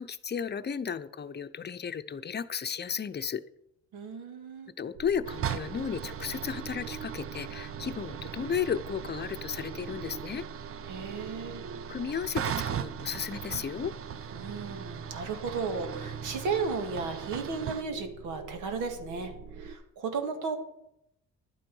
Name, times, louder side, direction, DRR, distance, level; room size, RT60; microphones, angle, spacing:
voice 1, 0.0-3.4 4.8-10.5 11.9-13.9, left 7 dB, 35° left, 12 dB, 0.7 m, -34 dB
voice 2, 3.9-4.7 10.9-11.6 14.3-20.6, right 4 dB, 90° right, 6 dB, 2.1 m, -34 dB
sound 1, 4.9-19.8, right 5 dB, 70° right, 1.1 m, -45 dB
sound 2, 5.3-17.8, right 9 dB, 45° right, 0.7 m, -39 dB
11.5 x 8.9 x 5.5 m, 0.80 s
cardioid pair, 90°, 30 cm